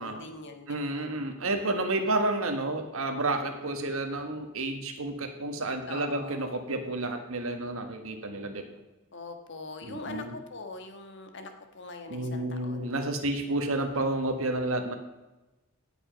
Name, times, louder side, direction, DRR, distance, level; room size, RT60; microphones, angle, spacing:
voice 1, 0.0-1.1 5.9-6.5 9.1-13.0, left 3 dB, 55° left, 6 dB, 1.5 m, -42 dB
voice 2, 0.7-8.7 9.8-10.3 12.1-15.0, right 2 dB, 70° right, 6 dB, 1.6 m, -30 dB
17.0 x 7.2 x 5.3 m, 1.1 s
head